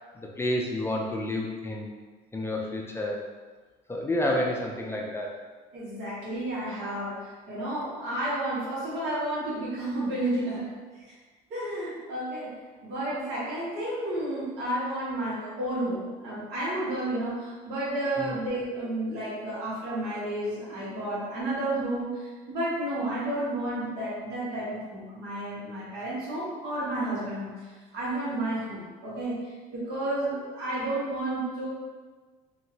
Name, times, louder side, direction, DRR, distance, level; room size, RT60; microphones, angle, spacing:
voice 1, 0.4-1.9 2.3-3.2 3.9-5.4 18.2-18.3, left 1 dB, 15° left, -1 dB, 0.3 m, -29 dB
voice 2, 5.7-10.7 11.5-12.5 12.8-27.7 27.9-29.3 29.7-31.7, right 1 dB, 85° right, -8 dB, 1.4 m, -31 dB
2.8 x 2.7 x 2.7 m, 1.4 s
cardioid pair, 110°, 17 cm